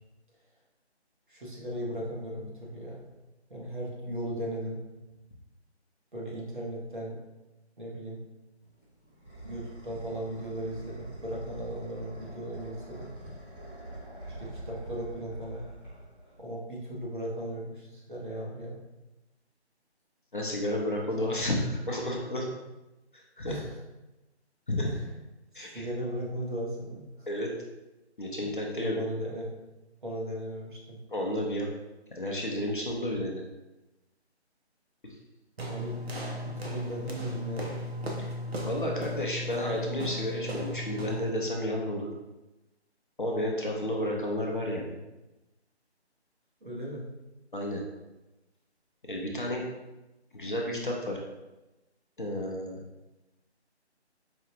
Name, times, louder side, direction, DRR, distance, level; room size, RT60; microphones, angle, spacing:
voice 1, 1.3-3.0 3.5-4.8 6.1-7.2 7.8-8.2 9.4-13.1 14.4-15.6 16.4-18.8 21.2-21.3 23.5-23.8 24.8-25.0 25.7-27.3 28.8-29.5 30.0-31.0 35.7-36.0 36.4-37.8 39.0-39.1 46.6-47.0, right 1 dB, 45° right, -4 dB, 1.1 m, -37 dB
sound 1, 8.6-16.6, right 1 dB, 25° right, 1.5 m, -44 dB
voice 2, 20.3-22.5 23.1-23.5 24.7-24.9 25.5-25.9 27.3-27.5 28.2-29.0 31.1-31.7 32.1-33.4 38.2-38.3 38.7-42.1 43.2-45.0 47.5-47.8 49.1-49.7 50.3-51.2 52.2-52.8, left 1 dB, 50° left, -1 dB, 0.6 m, -31 dB
sound 2, 35.6-41.4, left 1 dB, 65° right, 0.8 m, -36 dB
4.9 x 2.3 x 2.8 m, 1.0 s
figure-of-eight pair, 175°, 34 cm